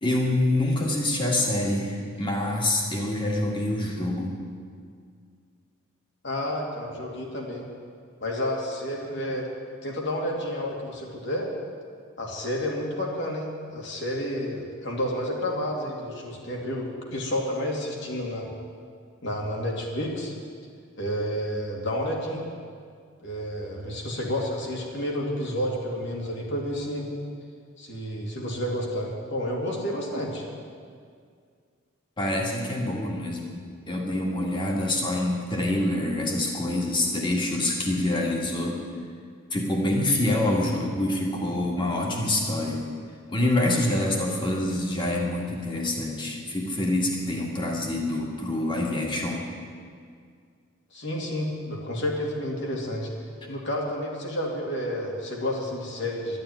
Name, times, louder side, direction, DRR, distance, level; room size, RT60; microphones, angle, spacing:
voice 1, 0.0-4.4 32.2-38.8 39.5-42.9 43.3-49.5, left 1 dB, 20° left, -1 dB, 1.9 m, -26 dB
voice 2, 6.2-7.6 8.2-9.5 9.8-11.5 12.2-18.5 19.2-20.3 21.0-22.4 23.2-27.1 27.8-30.5 50.9-53.1 53.5-56.4, equal, 55° left, -1 dB, 2.6 m, -30 dB
11.5 x 11.0 x 9.5 m, 2.1 s
head